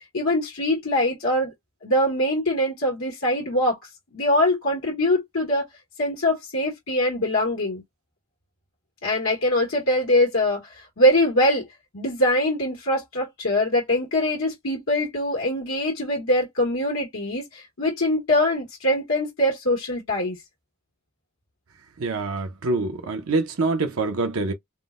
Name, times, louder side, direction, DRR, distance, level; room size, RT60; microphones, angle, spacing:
voice 1, 0.1-1.5 1.8-3.8 4.1-5.6 6.0-7.8 9.0-11.6 11.9-20.4, left 1 dB, 75° left, 1.1 m, -23 dB
voice 2, 22.0-24.5, right 3 dB, 85° right, 0.6 m, -25 dB
3.6 x 2.1 x 2.4 m
head